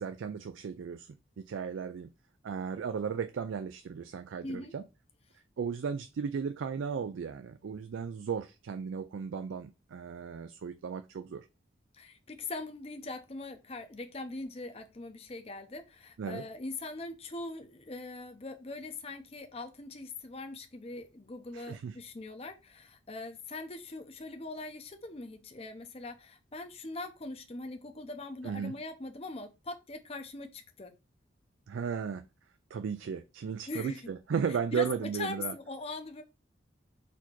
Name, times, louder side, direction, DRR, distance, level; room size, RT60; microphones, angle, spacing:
voice 1, 0.0-2.1 2.4-4.8 5.6-11.5 16.2-16.4 21.5-22.0 28.4-28.7 31.7-32.2 32.7-35.5, right 6 dB, 75° right, 0.3 m, -35 dB
voice 2, 4.4-4.7 11.9-30.9 33.7-34.0 34.5-34.9 35.1-36.2, left 2 dB, 30° left, 0.6 m, -41 dB
4.2 x 2.8 x 4.5 m
head